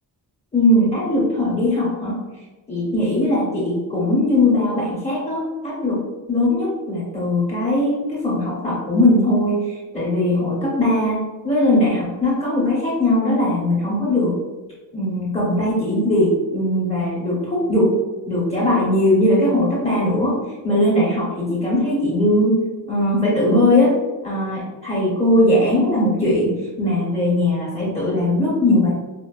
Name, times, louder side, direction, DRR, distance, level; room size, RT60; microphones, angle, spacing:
voice 1, 0.5-2.2 2.7-14.3 14.9-18.0 18.3-20.4 20.6-22.6 22.9-23.9 24.2-28.9, left 1 dB, 15° left, -7 dB, 0.9 m, -19 dB
4.3 x 2.2 x 2.3 m, 1.2 s
wide cardioid pair, 170°, 43 cm